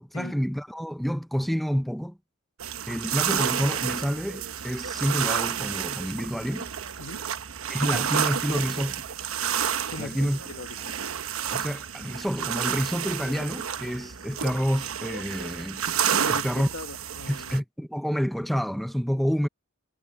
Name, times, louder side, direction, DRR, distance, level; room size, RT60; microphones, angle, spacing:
voice 1, 0.0-2.2 2.9-6.7 7.7-9.0 10.0-10.4 11.5-15.8 16.3-16.7 17.3-19.5, equal, ahead, 0.6 m, -28 dB
sound 1, 2.6-17.6, right 8 dB, 90° right, 1.0 m, -30 dB
voice 2, 7.0-7.3 9.9-11.0 16.2-17.6, left 3 dB, 85° left, 1.5 m, -40 dB
head